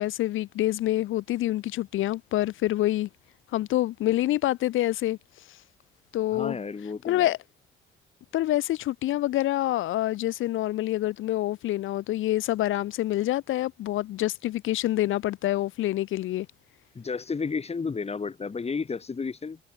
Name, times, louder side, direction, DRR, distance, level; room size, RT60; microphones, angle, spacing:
voice 1, 0.0-3.1 3.5-5.2 5.5-5.6 6.1-6.6 7.0-7.4 8.3-16.5, left 15 dB, 85° left, 1.9 m, -26 dB
voice 2, 6.3-7.3 16.9-19.6, left 5 dB, 30° left, 2.9 m, -32 dB
cardioid pair, 90°, 20 cm